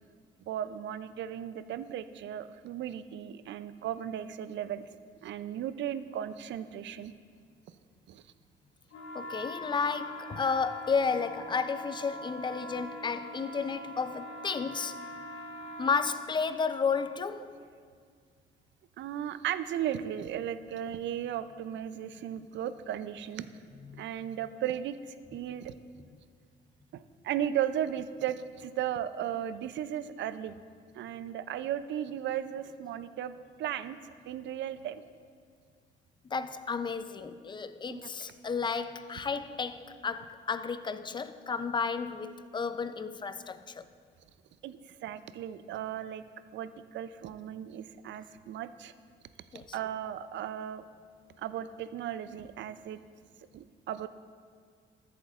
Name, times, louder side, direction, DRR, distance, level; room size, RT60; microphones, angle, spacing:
voice 1, 0.5-4.8 5.2-7.1 8.1-8.2 19.0-23.5 24.0-25.8 26.9-30.6 30.9-33.3 33.6-34.0 34.3-35.0 37.9-38.0 44.6-46.2 46.5-48.9 49.5-50.8 51.4-53.0 53.5-54.1, right 10 dB, 65° right, 0.4 m, -36 dB
sound 1, 8.9-16.1, equal, 75° left, 1.3 m, -42 dB
voice 2, 9.1-15.0 15.8-17.5 23.9-24.0 36.2-43.9 49.5-49.7, left 5 dB, 25° left, 0.4 m, -32 dB
13.5 x 8.1 x 2.4 m
cardioid pair, 90°, 20 cm